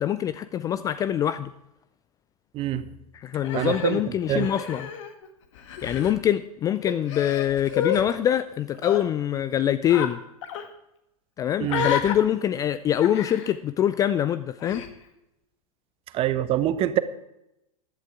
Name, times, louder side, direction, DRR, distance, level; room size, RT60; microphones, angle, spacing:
voice 1, 0.0-1.5 3.1-4.9 5.8-10.2 11.4-14.8, left 10 dB, 20° left, 13 dB, 0.3 m, -24 dB
voice 2, 2.5-2.9 3.5-4.0 4.3-4.5 11.6-11.9 16.1-17.0, right 12 dB, 30° right, 14 dB, 0.9 m, -24 dB
Human voice, 3.4-5.3 5.5-6.1 6.8-8.0 8.7-9.0 9.9-10.1 10.4-10.7 11.7-12.1 13.0-13.5 14.6-14.9, left 8 dB, 50° left, 1.5 m, -30 dB
15.0 x 11.5 x 3.5 m, 0.86 s
figure-of-eight pair, 95°, 19 cm